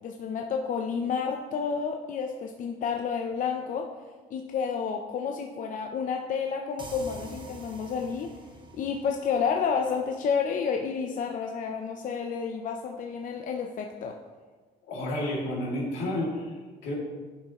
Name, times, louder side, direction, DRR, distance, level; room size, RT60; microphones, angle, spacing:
voice 1, 0.0-3.9 4.3-8.3 8.7-14.2, left 6 dB, 50° left, 3 dB, 0.6 m, -30 dB
sound 1, 6.8-10.3, right 3 dB, 30° right, 1.2 m, -46 dB
voice 2, 14.9-16.9, left 1 dB, 80° left, -4 dB, 2.4 m, -31 dB
10.0 x 5.6 x 3.0 m, 1.4 s
cardioid pair, 110°, 17 cm